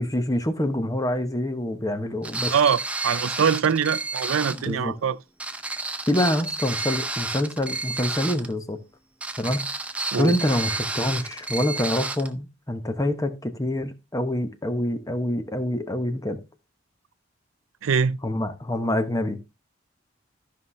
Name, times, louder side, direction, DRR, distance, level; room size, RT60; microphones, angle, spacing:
voice 1, 0.0-2.5 4.5-4.9 6.1-8.8 9.4-9.6 10.2-16.4 18.2-19.4, left 1 dB, 15° left, 0.9 m, -26 dB
sound 1, 2.2-4.7 5.4-8.5 9.2-12.3, right 2 dB, 5° right, 0.5 m, -31 dB
voice 2, 2.5-5.2 10.1-10.4 17.8-18.2, right 7 dB, 85° right, 0.4 m, -23 dB
13.5 x 5.6 x 3.2 m
head